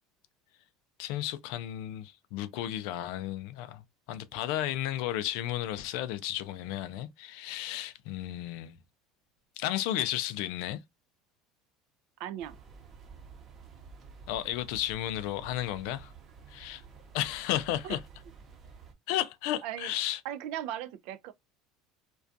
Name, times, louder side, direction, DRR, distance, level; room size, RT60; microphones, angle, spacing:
voice 1, 1.0-8.8 9.6-10.8 14.3-16.1 16.5-16.8 17.1-18.0 19.1-20.2, left 13 dB, 70° left, 0.4 m, -33 dB
voice 2, 12.2-12.6 17.8-18.0 19.6-19.9 20.2-21.3, right 11 dB, 65° right, 0.3 m, -37 dB
sound 1, 12.4-18.9, right 5 dB, 35° right, 0.7 m, -51 dB
2.3 x 2.2 x 2.5 m
supercardioid pair, 125°, 0 cm